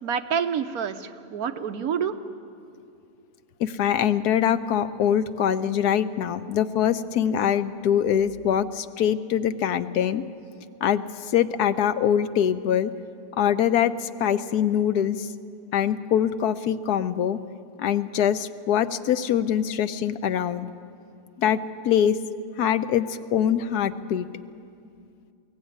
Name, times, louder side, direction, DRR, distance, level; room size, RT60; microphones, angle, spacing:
voice 1, 0.0-2.1, right 7 dB, 70° right, 8 dB, 1.3 m, -28 dB
voice 2, 3.6-10.2 10.8-12.9 13.4-15.3 15.7-17.4 17.8-20.7 21.4-21.6 21.8-22.2 22.6-24.3, left 9 dB, 75° left, 12 dB, 1.3 m, -23 dB
23.0 x 16.5 x 9.6 m, 2.5 s
omnidirectional pair, 1.7 m